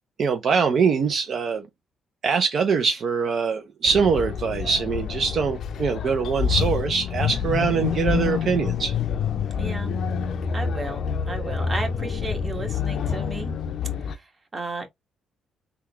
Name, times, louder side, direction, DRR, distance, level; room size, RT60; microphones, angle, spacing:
voice 1, 0.2-1.6 2.2-8.9, right 5 dB, 55° right, 0.5 m, -23 dB
sound 1, 3.9-14.1, left 7 dB, 65° left, 0.4 m, -27 dB
voice 2, 9.6-9.9 10.5-13.5 14.0-14.9, right 2 dB, 25° right, 1.2 m, -34 dB
3.6 x 2.3 x 2.9 m
cardioid pair, 90°, 0 cm